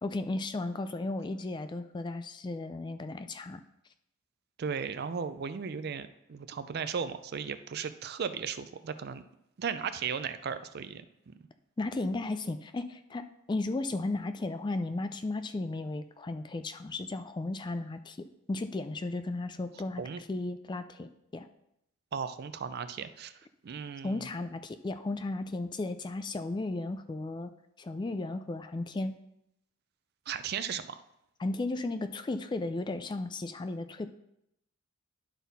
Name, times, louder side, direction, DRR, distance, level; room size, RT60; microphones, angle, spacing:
voice 1, 0.0-3.6 11.8-20.0 20.3-21.5 24.0-27.5 27.8-29.1 31.4-34.1, left 2 dB, 20° left, 10 dB, 0.3 m, -35 dB
voice 2, 4.6-9.2 9.6-11.3 20.0-20.2 22.1-23.3 23.6-24.3 30.3-31.0, right 6 dB, 50° right, 12 dB, 0.4 m, -36 dB
11.0 x 4.1 x 4.0 m, 0.81 s
head